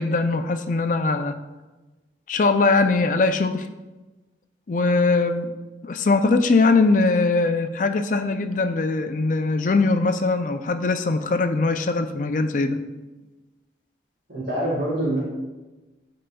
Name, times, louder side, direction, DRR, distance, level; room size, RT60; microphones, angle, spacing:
voice 1, 0.0-1.3 2.3-3.7 4.7-5.5 5.8-12.8, left 3 dB, 40° left, 8 dB, 0.4 m, -21 dB
voice 2, 14.3-15.2, right 1 dB, 50° right, -7 dB, 1.5 m, -25 dB
11.0 x 3.9 x 2.3 m, 1.2 s
head